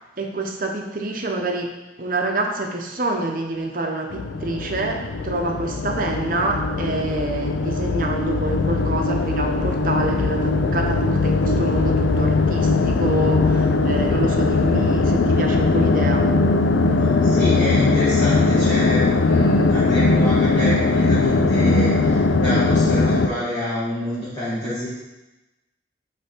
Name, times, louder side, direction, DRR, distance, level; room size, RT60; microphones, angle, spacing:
voice 1, 0.0-1.7 2.0-16.3, right 2 dB, 45° right, 2 dB, 0.8 m, -27 dB
sound 1, 4.1-23.3, left 3 dB, 85° left, 0.5 m, -20 dB
voice 2, 17.2-24.9, left 1 dB, 25° left, -13 dB, 2.0 m, -26 dB
8.2 x 3.4 x 4.4 m, 1.0 s
head